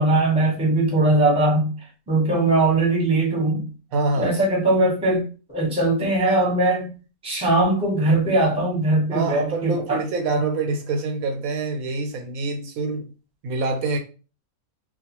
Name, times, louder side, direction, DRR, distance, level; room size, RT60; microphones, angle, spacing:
voice 1, 0.0-1.7 2.1-3.7 4.1-5.3 5.5-6.9 7.2-10.0, right 2 dB, 5° right, 0.7 m, -20 dB
voice 2, 3.9-4.4 9.1-13.1 13.4-14.0, right 3 dB, 80° right, 1.0 m, -26 dB
2.4 x 2.2 x 2.9 m
omnidirectional pair, 1.5 m